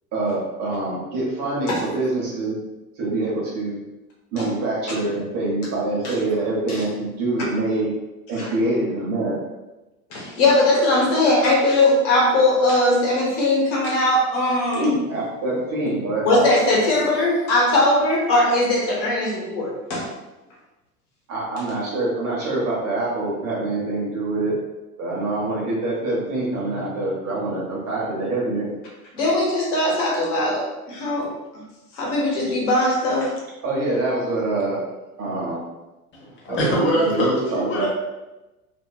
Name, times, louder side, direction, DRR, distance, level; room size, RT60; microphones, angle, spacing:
voice 1, 0.1-2.6 3.0-3.8 4.3-7.9 8.3-9.3 14.7-16.4 21.3-24.5 25.0-28.7 33.6-34.8 35.2-35.6 36.5-37.9, right 2 dB, 35° right, -5 dB, 1.0 m, -25 dB
voice 2, 10.1-14.9 16.2-20.1 29.1-31.3 31.9-33.3, left 1 dB, 55° left, -3 dB, 1.1 m, -20 dB
voice 3, 36.2-37.9, equal, 25° left, -4 dB, 0.9 m, -22 dB
2.7 x 2.6 x 2.3 m, 1.0 s
figure-of-eight pair, 85°, 44 cm